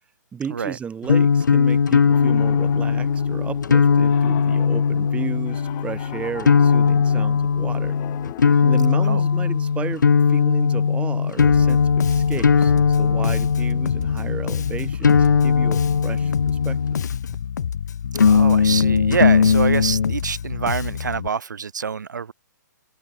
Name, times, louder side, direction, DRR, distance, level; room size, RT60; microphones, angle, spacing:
voice 1, 0.3-8.0 8.6-16.8, right 7 dB, 10° right, 2.7 m, -34 dB
sound 1, 1.0-17.3 18.1-20.1, left 6 dB, 80° left, 0.7 m, -19 dB
Piano, 2.1-8.6, left 33 dB, 30° left, 6.0 m, -39 dB
Bass guitar, 11.4-21.3, left 8 dB, 60° left, 3.5 m, -29 dB
voice 2, 18.3-22.3, right 6 dB, 70° right, 4.5 m, -26 dB
figure-of-eight pair, 130°, 10 cm